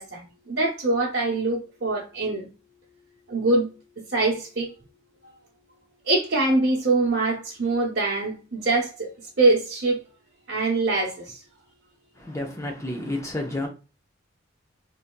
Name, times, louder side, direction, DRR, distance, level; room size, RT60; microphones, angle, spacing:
voice 1, 0.0-2.5 3.3-3.7 4.1-4.7 6.1-9.1 9.4-10.0 10.5-11.4, right 2 dB, 65° right, 0.9 m, -23 dB
voice 2, 12.2-13.7, left 1 dB, 15° left, 0.7 m, -30 dB
3.9 x 2.8 x 2.2 m
head